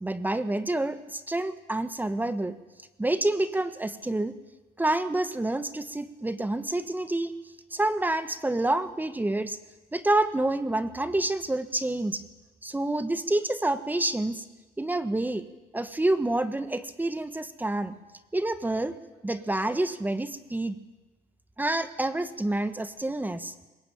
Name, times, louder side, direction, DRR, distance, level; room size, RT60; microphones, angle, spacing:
voice 1, 0.0-2.5 3.0-4.4 4.8-7.3 7.7-9.6 9.9-12.2 12.6-14.4 14.8-15.5 15.7-18.0 18.3-19.0 19.2-20.8 21.6-23.5, right 2 dB, 10° right, 10 dB, 1.3 m, -28 dB
22.5 x 19.0 x 9.0 m, 1.1 s
cardioid pair, 110°, 17 cm